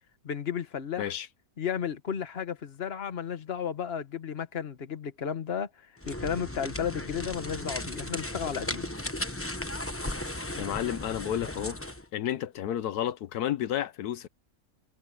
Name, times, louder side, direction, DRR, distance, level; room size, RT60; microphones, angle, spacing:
voice 1, 0.2-1.1 1.6-5.7 6.1-8.9, left 8 dB, 40° left, 1.5 m, -33 dB
sound 1, 6.0-12.0, left 1 dB, 10° left, 1.0 m, -36 dB
voice 2, 10.6-11.8 12.1-14.3, left 11 dB, 80° left, 1.3 m, -31 dB
omnidirectional pair, 1.7 m